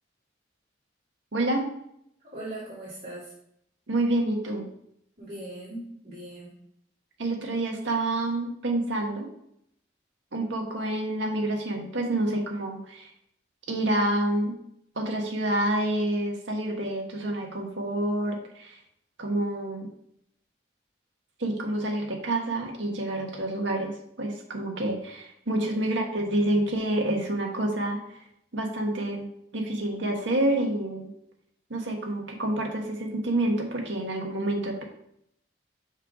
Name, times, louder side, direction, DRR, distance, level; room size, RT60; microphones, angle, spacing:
voice 1, 1.3-1.7 3.9-4.7 7.2-9.3 10.3-13.1 13.7-14.5 15.0-18.8 19.2-19.9 21.4-23.9 24.2-28.0 28.5-29.3 29.5-31.1 31.7-34.8, right 1 dB, 80° right, 1 dB, 1.3 m, -28 dB
voice 2, 2.2-3.3 5.2-6.5 25.5-25.7, right 1 dB, 40° right, -10 dB, 2.2 m, -40 dB
6.0 x 4.5 x 3.9 m, 0.74 s
head